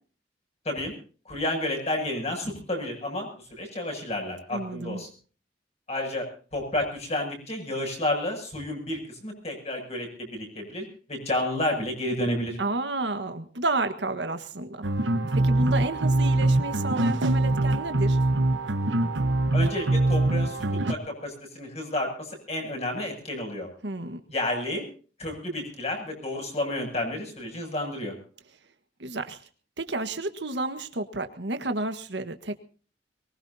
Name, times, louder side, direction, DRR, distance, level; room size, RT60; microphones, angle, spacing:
voice 1, 1.2-5.1 5.9-12.6 19.5-20.6 20.9-23.7 24.3-24.9 25.2-28.2, left 1 dB, 35° left, 2 dB, 7.7 m, -31 dB
voice 2, 4.5-5.0 12.6-14.8 15.3-18.2 23.8-24.2 29.0-29.4 29.8-32.5, right 2 dB, 70° right, 9 dB, 1.6 m, -31 dB
sound 1, 14.8-20.9, right 2 dB, 90° right, 1.3 m, -23 dB
23.0 x 20.5 x 2.9 m, 0.40 s
head